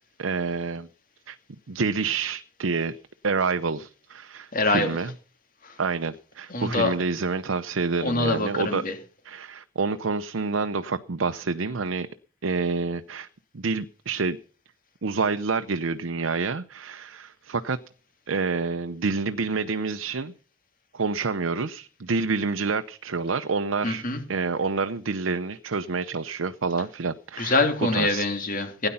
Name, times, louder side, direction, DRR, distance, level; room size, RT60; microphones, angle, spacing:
voice 1, 0.2-0.9 1.3-1.4 1.7-3.0 3.2-5.1 5.8-8.8 9.2-12.1 12.4-13.3 13.5-14.4 15.0-17.8 18.3-20.3 20.9-24.0 24.3-27.6 27.9-28.3, right 4 dB, 80° right, 0.7 m, -28 dB
voice 2, 4.5-5.0 5.6-5.7 6.5-6.9 8.0-8.9 23.8-24.2 27.4-28.9, left 2 dB, 45° left, 3.0 m, -24 dB
16.5 x 10.0 x 5.6 m
head